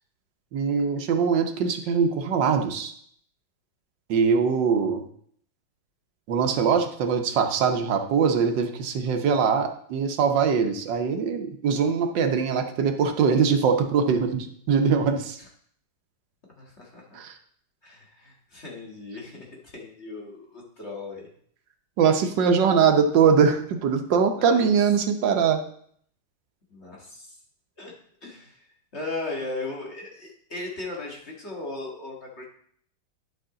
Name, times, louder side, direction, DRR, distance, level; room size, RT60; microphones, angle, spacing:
voice 1, 0.5-2.9 4.1-5.0 6.3-15.4 17.1-17.3 22.0-25.6, right 6 dB, 75° right, 6 dB, 1.5 m, -22 dB
voice 2, 16.6-17.2 17.8-21.3 24.4-24.8 26.7-27.4 27.8-27.9 28.2-28.7 28.9-32.4, left 2 dB, 35° left, -2 dB, 2.0 m, -37 dB
11.0 x 5.9 x 3.8 m, 0.63 s
omnidirectional pair, 2.0 m